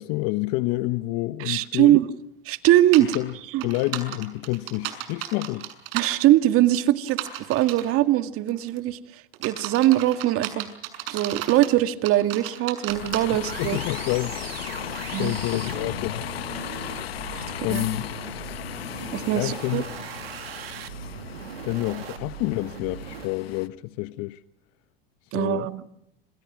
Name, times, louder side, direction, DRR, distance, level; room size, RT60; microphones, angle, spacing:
voice 1, 0.0-2.0 3.0-3.3 3.6-5.7 13.3-14.8 15.1-16.3 17.6-18.1 19.3-19.9 21.6-24.4 25.3-25.7, left 19 dB, 55° left, 1.1 m, -28 dB
voice 2, 1.4-2.1 2.5-3.1 3.5-3.7 5.9-7.2 7.5-9.0 9.4-10.7 11.1-13.8 15.1-15.3 17.3-17.4 17.7-17.8 19.1-19.8 25.3-25.8, right 14 dB, 50° right, 2.0 m, -21 dB
sound 1, 2.9-3.2 3.6-6.1 7.1-7.9 8.5-8.8 9.3-11.7 12.0-13.2, right 14 dB, 65° right, 6.7 m, -33 dB
Bus, 12.9-23.7, left 11 dB, 85° left, 1.5 m, -36 dB
sound 2, 13.4-23.3, right 10 dB, 80° right, 2.6 m, -40 dB
27.5 x 27.0 x 6.2 m
hypercardioid pair, 95°, 30 cm